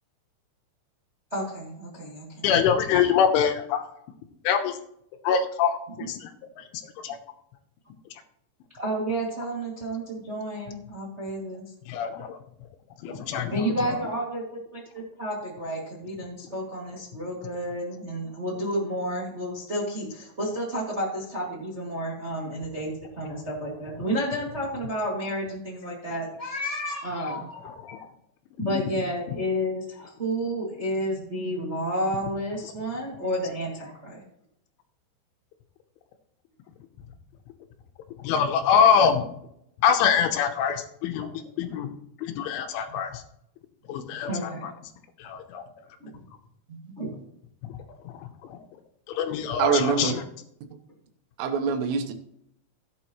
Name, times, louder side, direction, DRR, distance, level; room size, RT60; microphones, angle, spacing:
voice 1, 1.3-2.5 6.0-6.1 8.7-11.7 13.0-13.2 13.5-14.4 14.7-28.1 28.6-34.2 42.9-43.0 44.3-44.7 46.0-46.2 46.7-47.2, equal, 45° right, -4 dB, 0.8 m, -31 dB
voice 2, 2.4-3.8 4.4-4.8 5.2-5.8 6.1-6.3 7.0-7.2 11.9-12.4 13.0-13.7 28.6-28.7 38.2-39.2 39.8-41.3 41.6-41.9 42.4-43.2 43.9-44.7 45.2-45.6 49.1-50.2, left 7 dB, 80° left, 6 dB, 3.3 m, -24 dB
voice 3, 49.6-50.2 51.4-52.1, right 6 dB, 85° right, 6 dB, 3.7 m, -24 dB
16.0 x 8.2 x 3.1 m, 0.73 s
omnidirectional pair, 5.8 m